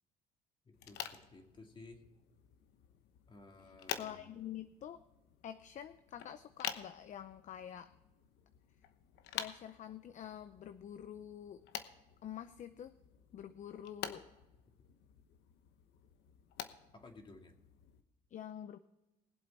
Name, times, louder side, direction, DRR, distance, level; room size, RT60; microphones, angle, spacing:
voice 1, 0.6-2.0 3.3-4.3 16.9-17.5, left 3 dB, 30° left, 3 dB, 2.3 m, -55 dB
sound 1, 0.7-18.0, left 10 dB, 85° left, 1.0 m, -49 dB
voice 2, 3.9-5.0 5.4-7.9 9.3-11.6 12.2-13.0 13.3-14.3 18.3-18.8, left 10 dB, 45° left, 11 dB, 0.6 m, -47 dB
20.5 x 7.8 x 4.1 m, 1.0 s
cardioid pair, 110°, 17 cm